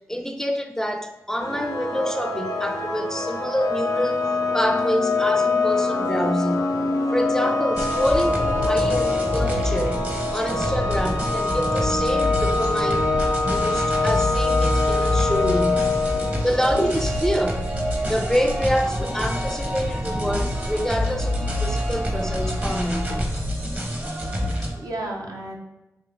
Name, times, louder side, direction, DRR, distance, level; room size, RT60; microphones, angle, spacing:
voice 1, 0.1-6.8 7.1-13.1 13.4-15.9 16.4-17.7 18.1-23.3 24.8-24.9, equal, 5° left, 6 dB, 0.4 m, -27 dB
sound 1, 1.4-17.7, left 3 dB, 85° left, 0.6 m, -24 dB
sound 2, 7.7-24.7, equal, 25° right, 0.8 m, -26 dB
sound 3, 15.4-24.9, right 1 dB, 55° right, 1.3 m, -40 dB
voice 2, 24.1-25.6, right 2 dB, 70° right, 0 dB, 0.7 m, -34 dB
3.7 x 2.7 x 3.5 m, 0.99 s
cardioid pair, 45°, 7 cm